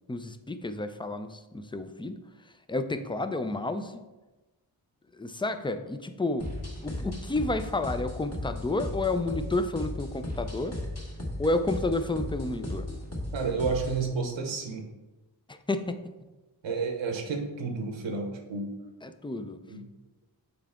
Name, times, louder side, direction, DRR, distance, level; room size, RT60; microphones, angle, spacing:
voice 1, 0.1-2.2 2.7-4.0 5.1-6.5 6.8-10.8 11.4-12.9 15.5-16.0 19.0-19.6, left 2 dB, 10° left, 9 dB, 0.4 m, -30 dB
sound 1, 6.4-14.1, left 1 dB, 35° left, 1.6 m, -36 dB
voice 2, 13.3-14.9 16.6-18.7 19.7-19.8, right 4 dB, 90° right, 4 dB, 1.1 m, -31 dB
7.0 x 4.5 x 3.6 m, 1.1 s
wide cardioid pair, 70°, 44 cm